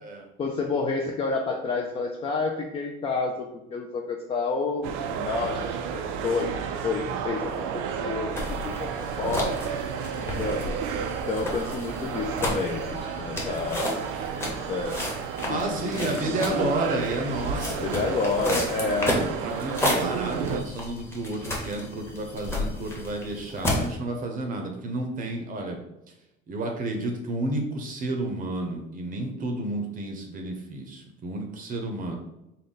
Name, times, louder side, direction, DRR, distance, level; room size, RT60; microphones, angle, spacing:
voice 1, 0.4-6.6 6.8-7.7 8.0-9.5 10.3-10.8 11.3-14.0 14.4-15.0 15.5-16.7 17.7-19.2, left 4 dB, 30° left, 1 dB, 0.4 m, -29 dB
sound 1, 4.8-20.6, right 7 dB, 80° right, 0.4 m, -32 dB
sound 2, 8.3-23.9, left 1 dB, 10° left, 0.9 m, -32 dB
voice 2, 15.5-17.9 18.5-25.8 26.5-32.2, right 2 dB, 45° right, 3 dB, 0.7 m, -31 dB
3.7 x 2.2 x 3.9 m, 0.88 s
cardioid pair, 120°, 20 cm